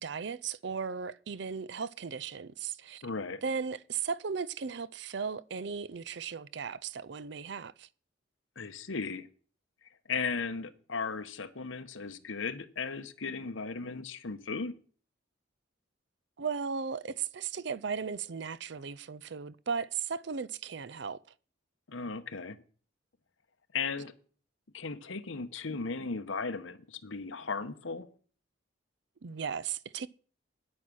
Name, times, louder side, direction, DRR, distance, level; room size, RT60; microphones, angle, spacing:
voice 1, 0.0-3.0 3.4-7.9 16.4-21.2 29.2-30.1, right 6 dB, 60° right, 0.5 m, -36 dB
voice 2, 3.0-3.4 8.6-9.3 10.1-14.7 21.9-22.6 23.7-24.1 24.7-28.1, left 4 dB, 80° left, 1.0 m, -36 dB
10.0 x 8.7 x 6.3 m
head